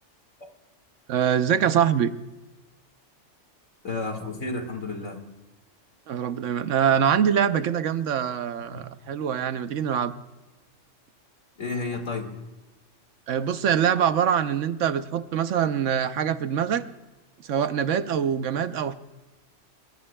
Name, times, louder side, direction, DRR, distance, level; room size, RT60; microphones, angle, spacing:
voice 1, 1.1-2.1 6.1-10.1 13.3-16.9 17.4-18.9, right 8 dB, 80° right, 11 dB, 1.1 m, -24 dB
voice 2, 3.8-5.2 8.7-8.8 11.6-12.4, left 3 dB, 85° left, 5 dB, 2.5 m, -32 dB
23.5 x 22.0 x 2.2 m, 1.1 s
omnidirectional pair, 1.3 m